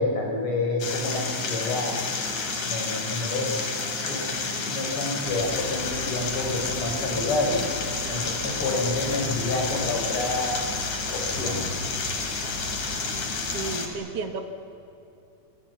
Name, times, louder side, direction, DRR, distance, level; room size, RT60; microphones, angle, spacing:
voice 1, 0.0-2.0 2.6-3.6 3.9-7.6 8.1-10.6 11.1-11.7, left 2 dB, 45° left, 1 dB, 5.3 m, -28 dB
sound 1, 0.8-13.9, left 4 dB, 75° left, 3.9 m, -30 dB
sound 2, 5.2-13.8, equal, 25° left, 1.6 m, -39 dB
voice 2, 13.5-14.5, right 4 dB, 55° right, 6 dB, 2.4 m, -32 dB
26.5 x 26.0 x 7.3 m, 2.8 s
omnidirectional pair, 3.3 m